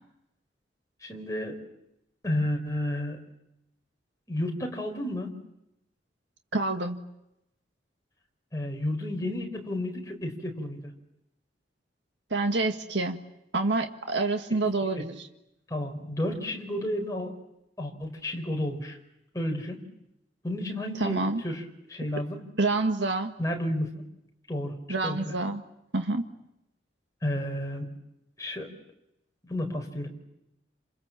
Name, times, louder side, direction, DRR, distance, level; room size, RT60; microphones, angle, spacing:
voice 1, 1.0-1.5 2.2-3.2 4.3-5.4 8.5-10.8 14.9-15.1 15.7-17.3 17.8-19.0 19.3-19.9 20.4-21.6 21.9-22.4 23.4-24.0 24.5-24.7 25.0-25.3 27.2-27.9 28.4-28.7 29.4-30.1, left 1 dB, 20° left, 1 dB, 4.9 m, -31 dB
voice 2, 6.5-7.0 12.3-13.2 13.5-15.3 21.0-21.4 22.6-23.3 24.9-25.6 25.9-26.2, right 3 dB, 80° right, 5 dB, 1.8 m, -27 dB
28.5 x 27.5 x 7.5 m, 0.85 s
head